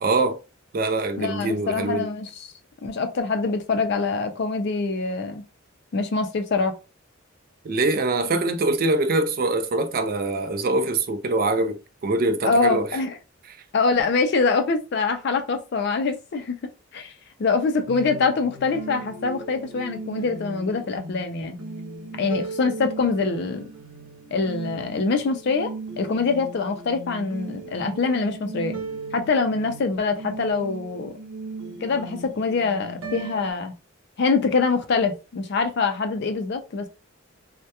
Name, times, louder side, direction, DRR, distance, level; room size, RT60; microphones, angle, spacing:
voice 1, 0.0-0.4 0.7-2.1 7.6-12.9 13.5-13.6, right 2 dB, 45° right, 0.4 m, -23 dB
voice 2, 1.2-2.5 2.8-5.4 5.9-6.7 12.4-13.1 13.7-16.6 16.9-17.1 17.4-21.6 22.2-23.6 24.3-25.7 26.0-28.8 29.1-31.1 31.8-33.7 34.2-36.9, left 4 dB, 55° left, 0.4 m, -24 dB
sound 1, 17.9-33.5, right 3 dB, 85° right, 0.7 m, -37 dB
2.2 x 2.1 x 2.7 m
head